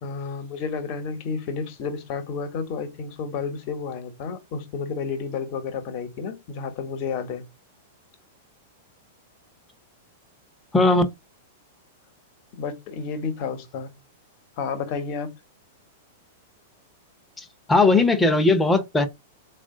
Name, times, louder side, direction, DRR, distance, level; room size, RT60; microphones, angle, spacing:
voice 1, 0.0-7.4 12.5-13.9 14.6-15.3, left 5 dB, 50° left, 1.1 m, -31 dB
voice 2, 10.7-11.0 17.7-19.0, left 3 dB, 10° left, 0.8 m, -18 dB
3.4 x 2.5 x 3.7 m
hypercardioid pair, 120°, 0 cm